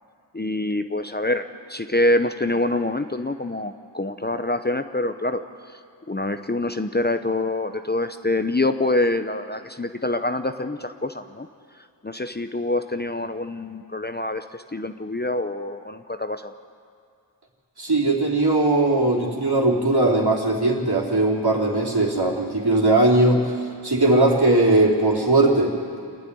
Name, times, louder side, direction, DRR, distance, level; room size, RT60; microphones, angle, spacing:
voice 1, 0.3-5.4 6.1-11.5 12.0-16.5, left 2 dB, 20° left, 8 dB, 0.8 m, -25 dB
voice 2, 17.8-23.4 23.8-25.7, right 2 dB, 60° right, -1 dB, 3.3 m, -19 dB
27.0 x 9.8 x 9.8 m, 2.3 s
wide cardioid pair, 50°, 44 cm